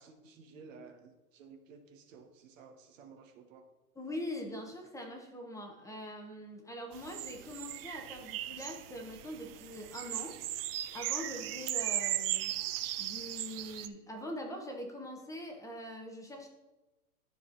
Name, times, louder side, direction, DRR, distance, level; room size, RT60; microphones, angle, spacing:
voice 1, 0.0-3.7, right 5 dB, 55° right, 6 dB, 1.5 m, -54 dB
voice 2, 4.0-10.4 10.9-12.5 13.0-16.5, left 1 dB, 5° left, 1 dB, 1.0 m, -43 dB
sound 1, 6.9-13.9, right 14 dB, 40° right, 0.5 m, -37 dB
12.5 x 4.4 x 4.1 m, 1.1 s
hypercardioid pair, 125°, 45 cm